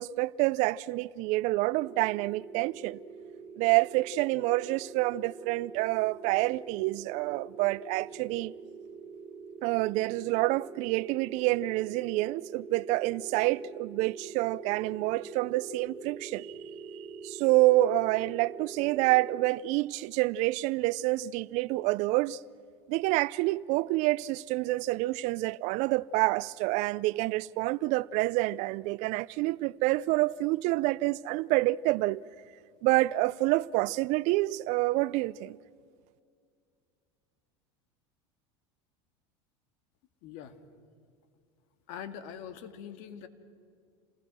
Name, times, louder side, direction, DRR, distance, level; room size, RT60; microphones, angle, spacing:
voice 1, 0.0-3.0 3.6-8.5 9.6-16.5 16.9-22.4 22.9-32.2 32.8-35.6, right 19 dB, 60° right, 0.5 m, -28 dB
sound 1, 1.8-19.5, right 5 dB, 30° right, 1.1 m, -45 dB
voice 2, 40.2-40.6 41.9-43.3, left 8 dB, 65° left, 2.0 m, -43 dB
28.5 x 20.0 x 6.2 m
supercardioid pair, 105°, 14 cm